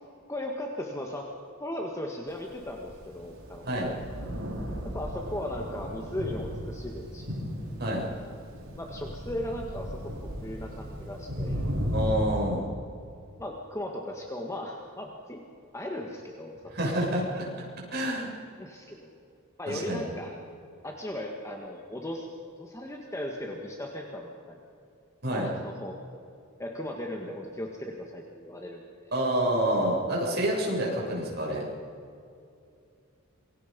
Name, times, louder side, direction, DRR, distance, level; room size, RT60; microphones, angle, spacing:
voice 1, 0.3-1.3 1.6-4.0 4.8-7.5 8.2-8.4 8.8-10.1 10.4-11.7 13.4-15.4 15.7-16.7 18.6-19.2 19.6-20.4 20.8-22.3 22.6-24.6 25.3-26.0 26.6-29.1, left 1 dB, 15° left, 1 dB, 1.7 m, -37 dB
Thunder, 2.5-12.1, equal, 80° right, 7.4 m, -36 dB
voice 2, 11.9-12.7 16.7-17.5 17.9-18.3 19.7-20.1 25.2-25.5 29.1-31.7, right 1 dB, 50° right, -2 dB, 7.1 m, -28 dB
27.0 x 22.5 x 5.4 m, 2.5 s
head